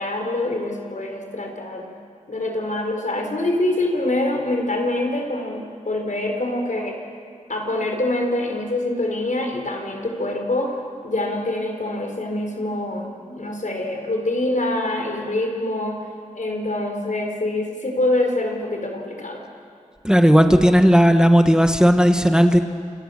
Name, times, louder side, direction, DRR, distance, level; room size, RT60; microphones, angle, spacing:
voice 1, 0.0-1.9 2.3-7.0 7.5-16.0 16.3-19.4, left 1 dB, 75° left, 2 dB, 4.5 m, -25 dB
voice 2, 20.0-22.6, equal, 5° right, 6 dB, 1.4 m, -14 dB
28.5 x 28.0 x 6.6 m, 2.4 s
wide cardioid pair, 70°, 13 cm